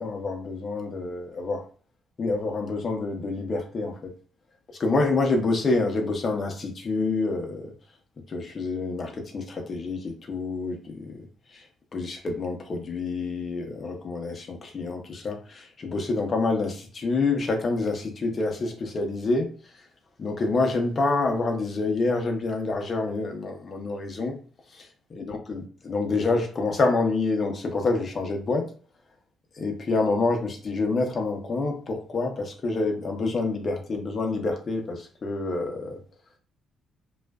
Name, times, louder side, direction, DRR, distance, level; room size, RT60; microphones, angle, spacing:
voice 1, 0.0-1.6 2.2-4.1 4.8-7.7 8.3-11.1 11.9-19.5 20.2-24.3 25.1-28.7 29.6-36.0, left 3 dB, 45° left, 0.7 m, -27 dB
2.4 x 2.3 x 2.2 m
cardioid pair, 90°, 0 cm